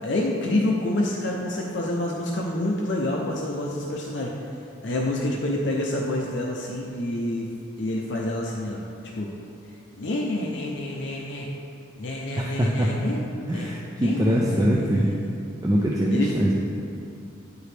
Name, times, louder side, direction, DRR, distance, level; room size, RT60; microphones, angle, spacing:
voice 1, 0.0-4.3 4.8-7.5 7.8-8.8 9.1-9.3 9.9-11.5 12.0-15.3 16.1-16.3, left 1 dB, 55° left, -2 dB, 0.6 m, -28 dB
voice 2, 12.4-12.9 13.5-15.1 15.6-16.5, equal, 15° right, -3 dB, 0.4 m, -23 dB
9.8 x 4.7 x 3.3 m, 2.6 s
head